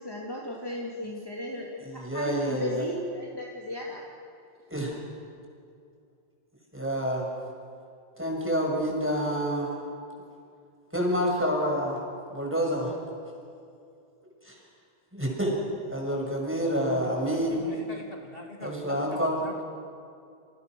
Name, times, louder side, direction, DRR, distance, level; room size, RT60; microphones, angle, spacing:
voice 1, 0.0-4.0, left 1 dB, 20° left, -3 dB, 2.9 m, -36 dB
voice 2, 1.8-2.9 4.7-5.0 6.7-7.3 8.2-9.7 10.9-12.0 12.3-12.9 14.4-14.5 15.1-15.6 15.9-17.6 18.6-19.6, equal, 10° right, -1 dB, 6.3 m, -28 dB
voice 3, 17.3-19.6, left 1 dB, 60° left, 1 dB, 3.0 m, -43 dB
29.0 x 28.0 x 6.3 m, 2.4 s
omnidirectional pair, 1.1 m